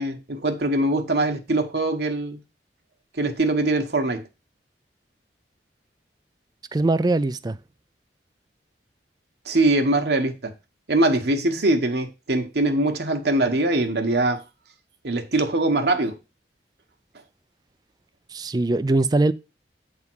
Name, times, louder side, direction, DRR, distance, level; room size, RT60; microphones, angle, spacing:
voice 1, 0.0-2.4 3.2-4.2 9.4-10.5 10.9-14.4 15.0-16.2, right 2 dB, 65° right, 1.1 m, -22 dB
voice 2, 6.7-7.6 18.3-19.3, right 2 dB, 20° right, 0.4 m, -21 dB
8.3 x 3.7 x 6.1 m
head